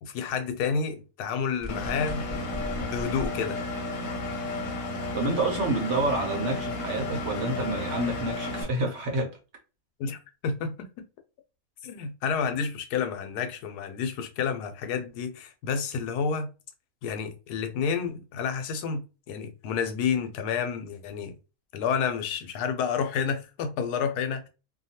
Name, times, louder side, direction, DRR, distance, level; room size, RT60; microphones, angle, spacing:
voice 1, 0.0-3.6 10.0-10.9 11.8-16.5 17.0-21.3 21.7-24.5, left 6 dB, 90° left, 1.1 m, -30 dB
sound 1, 1.6-3.3, left 1 dB, 20° right, 0.7 m, -36 dB
Engine, 1.7-8.6, left 2 dB, 65° left, 1.0 m, -33 dB
voice 2, 5.1-9.4, right 2 dB, 55° right, 0.9 m, -28 dB
2.7 x 2.2 x 2.7 m
omnidirectional pair, 1.6 m